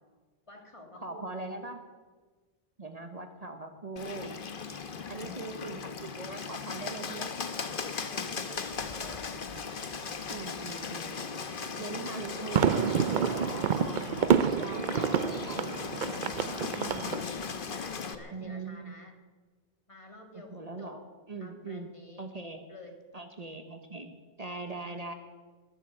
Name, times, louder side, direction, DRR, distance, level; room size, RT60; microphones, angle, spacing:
voice 1, 0.5-1.7 5.0-5.5 7.9-9.4 16.8-19.2 19.9-21.0 21.4-23.0, left 1 dB, 30° left, 4 dB, 2.0 m, -51 dB
voice 2, 1.0-1.8 2.8-4.3 5.1-7.3 10.3-11.3 11.8-15.8 16.7-17.3 18.3-18.9 20.3-21.9 22.2-22.6 23.1-25.1, right 3 dB, 40° right, 6 dB, 1.2 m, -41 dB
Bird, 4.0-18.2, left 5 dB, 60° left, 1.2 m, -37 dB
sound 1, 12.1-17.2, right 7 dB, 55° right, 0.7 m, -28 dB
22.0 x 7.8 x 7.7 m, 1.4 s
omnidirectional pair, 1.0 m